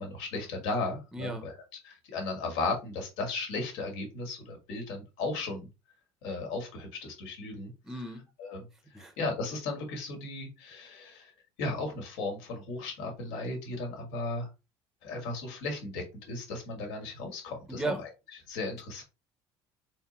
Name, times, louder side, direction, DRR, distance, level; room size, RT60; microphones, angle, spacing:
voice 1, 0.0-1.5 1.8-5.7 6.2-7.7 8.4-8.6 8.9-11.3 11.6-14.5 15.0-17.9 18.5-19.0, left 3 dB, 90° left, 1.9 m, -35 dB
voice 2, 1.1-1.4 7.8-8.2 8.7-9.2 17.7-18.0, right 2 dB, 5° right, 0.6 m, -36 dB
4.2 x 3.7 x 2.8 m
cardioid pair, 170°, 9 cm